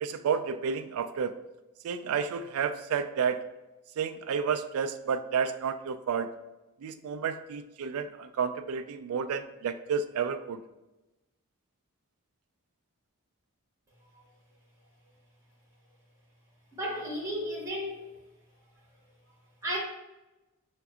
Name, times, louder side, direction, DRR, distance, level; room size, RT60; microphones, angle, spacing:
voice 1, 0.0-1.4 1.8-3.5 4.0-6.3 6.8-10.6, right 6 dB, 85° right, 10 dB, 0.3 m, -31 dB
voice 2, 16.8-18.0 19.6-19.8, equal, 15° right, -5 dB, 1.3 m, -33 dB
5.7 x 2.6 x 2.3 m, 1.0 s
head